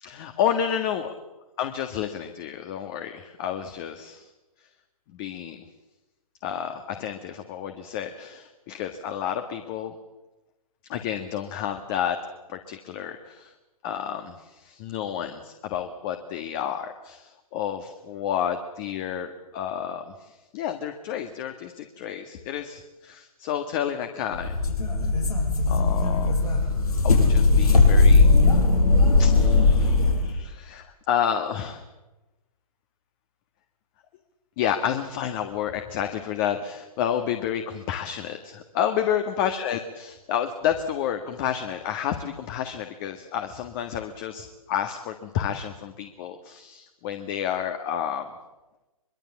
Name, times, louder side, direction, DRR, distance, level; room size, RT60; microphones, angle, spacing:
voice 1, 0.0-1.1 1.6-4.3 5.1-5.6 6.4-9.9 10.9-12.2 12.5-13.5 13.8-24.6 25.7-26.7 27.0-28.3 29.2-31.8 34.6-48.3, left 9 dB, 35° left, 7 dB, 1.7 m, -30 dB
sound 1, 24.3-30.3, left 3 dB, 80° left, 5.9 m, -18 dB
23.5 x 23.0 x 7.3 m, 1.1 s
figure-of-eight pair, 120°, 19 cm